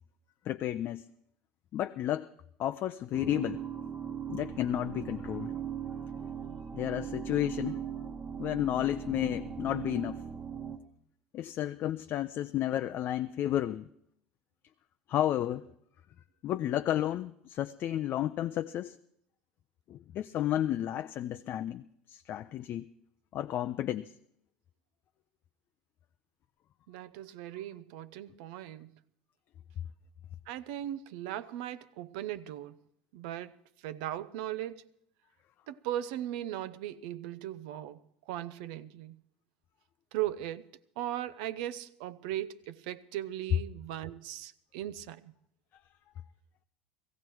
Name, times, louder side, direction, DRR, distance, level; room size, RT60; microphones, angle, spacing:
voice 1, 0.5-1.1 1.7-2.3 2.6-3.6 4.3-5.5 6.7-7.8 8.4-10.2 11.3-13.9 15.1-15.6 16.4-19.0 19.9-21.8 22.1-22.9 23.3-24.1, left 12 dB, 50° left, 0.5 m, -32 dB
sound 1, 3.1-10.8, right 8 dB, 25° right, 1.3 m, -39 dB
voice 2, 26.9-29.0 30.5-32.8 33.1-33.6 33.8-34.9 35.7-39.2 40.1-40.7 41.0-45.3, right 12 dB, 70° right, 0.6 m, -38 dB
17.0 x 15.0 x 4.6 m
hypercardioid pair, 80°, 5 cm